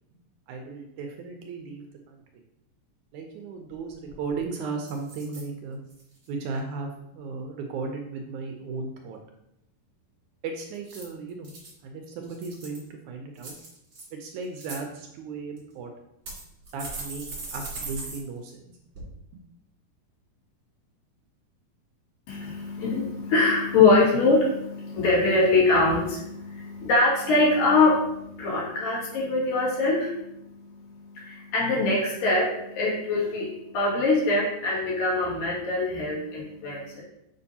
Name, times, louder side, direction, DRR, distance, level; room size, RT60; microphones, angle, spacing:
voice 1, 0.5-2.4 3.1-5.8 6.3-9.2 10.4-11.5 11.8-13.6 14.1-15.9 16.7-17.3 17.5-18.8 19.3-19.4, right 4 dB, 75° right, 3 dB, 1.9 m, -36 dB
sound 1, 3.7-3.8 4.1-4.4 4.8-5.4 5.9-6.3 10.7-11.7 12.2-12.9 13.4-14.0 14.4-14.8 15.6-15.7 16.3-18.2 18.5-18.6 18.9-19.0, right 3 dB, 40° right, 2.8 m, -39 dB
voice 2, 22.3-37.0, left 3 dB, 85° left, -6 dB, 4.0 m, -23 dB
7.0 x 5.4 x 2.8 m, 0.83 s
omnidirectional pair, 3.9 m